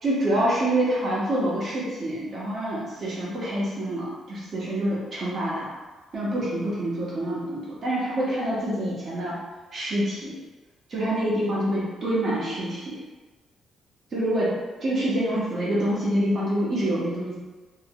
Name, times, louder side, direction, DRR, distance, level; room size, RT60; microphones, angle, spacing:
voice 1, 0.0-5.7 6.1-9.3 9.7-10.4 10.9-13.0 14.1-14.5 14.8-17.4, right 1 dB, 50° right, -7 dB, 1.3 m, -26 dB
3.0 x 2.2 x 3.0 m, 1.2 s
cardioid pair, 90°, 0 cm